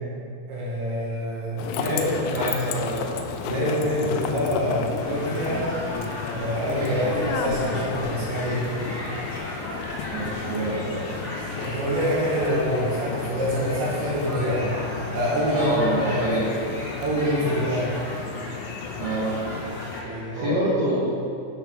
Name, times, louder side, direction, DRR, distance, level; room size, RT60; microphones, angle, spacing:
voice 1, 0.5-2.0 3.4-5.6 6.3-8.6 11.5-14.7 15.1-15.7 16.0-16.2 17.0-17.9 20.0-20.6, equal, 70° right, -6 dB, 3.6 m, -26 dB
sound 1, 1.6-20.0, left 6 dB, 85° left, 2.8 m, -33 dB
voice 2, 1.7-3.1 10.1-11.0 15.5-16.5 19.0-19.3 20.0-21.1, right 1 dB, 85° right, -9 dB, 1.8 m, -27 dB
sound 2, 5.0-20.0, equal, 60° left, 0.8 m, -36 dB
10.5 x 6.5 x 3.7 m, 2.4 s
omnidirectional pair, 5.8 m